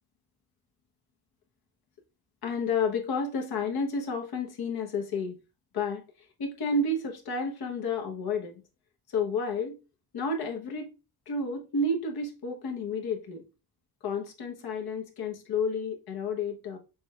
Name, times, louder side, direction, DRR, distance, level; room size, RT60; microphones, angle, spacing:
voice 1, 2.4-5.4 5.7-6.0 6.4-8.6 9.1-9.8 10.1-10.9 11.3-13.4 14.0-16.8, left 3 dB, 75° left, 1.1 m, -31 dB
6.1 x 3.3 x 2.4 m
cardioid pair, 125°, 38 cm